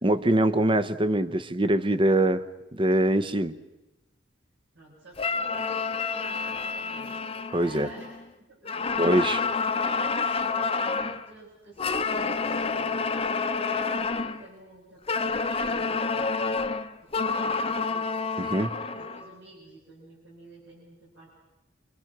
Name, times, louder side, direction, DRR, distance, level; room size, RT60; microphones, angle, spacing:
voice 1, 0.0-2.4 2.7-3.5 7.5-7.9 9.0-9.4 18.4-18.7, right 1 dB, 30° right, 13 dB, 0.9 m, -23 dB
voice 2, 4.7-7.2 7.6-8.1 8.4-8.9 9.3-15.3 15.6-16.3 17.1-18.1 18.8-21.4, right 1 dB, 80° right, -3 dB, 6.3 m, -50 dB
sound 1, 5.2-8.2 8.6-11.2 11.8-14.4 15.1-19.3, left 4 dB, 30° left, 0.9 m, -28 dB
27.0 x 24.0 x 6.0 m, 1.0 s
head